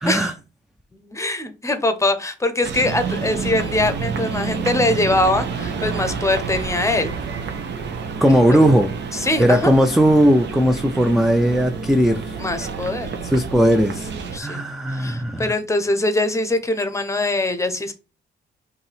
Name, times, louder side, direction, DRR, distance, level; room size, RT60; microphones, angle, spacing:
voice 1, 0.0-0.3 8.2-8.9 9.4-12.3 13.3-14.1 14.4-15.5, equal, ahead, 0.4 m, -17 dB
voice 2, 0.9-7.2 8.3-8.7 9.1-9.7 12.4-13.1 14.3-14.6 14.9-17.9, left 2 dB, 15° left, 0.8 m, -22 dB
sound 1, 2.6-14.4, right 5 dB, 60° right, 0.9 m, -29 dB
5.4 x 2.7 x 3.4 m
cardioid pair, 90°, 20 cm